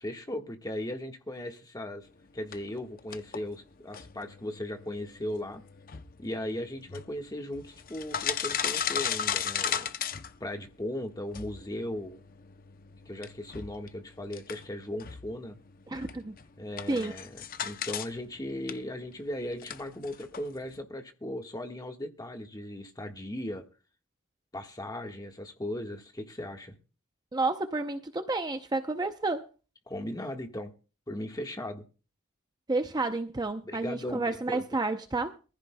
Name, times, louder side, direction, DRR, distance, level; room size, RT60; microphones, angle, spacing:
voice 1, 0.0-2.1 2.3-5.6 6.2-9.9 10.4-12.2 13.0-15.6 16.6-23.6 24.5-26.7 29.9-30.7 31.1-31.8 33.6-34.6, left 1 dB, 15° left, 1.4 m, -37 dB
sound 1, 2.5-10.9 11.3-18.1 18.4-20.8, left 8 dB, 40° left, 0.6 m, -37 dB
voice 2, 15.9-16.3 16.9-17.1 27.3-29.5 32.7-35.3, right 3 dB, 20° right, 0.6 m, -30 dB
22.5 x 15.0 x 2.2 m
head